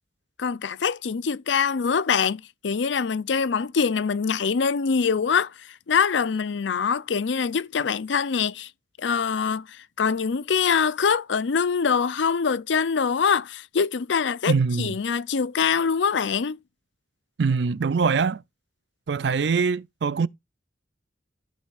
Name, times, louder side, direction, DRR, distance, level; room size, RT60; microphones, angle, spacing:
voice 1, 0.4-8.7 9.0-16.6, left 6 dB, 80° left, 0.5 m, -24 dB
voice 2, 14.5-14.9 17.4-18.4 19.1-20.3, right 5 dB, 65° right, 0.5 m, -23 dB
14.5 x 6.3 x 2.5 m
head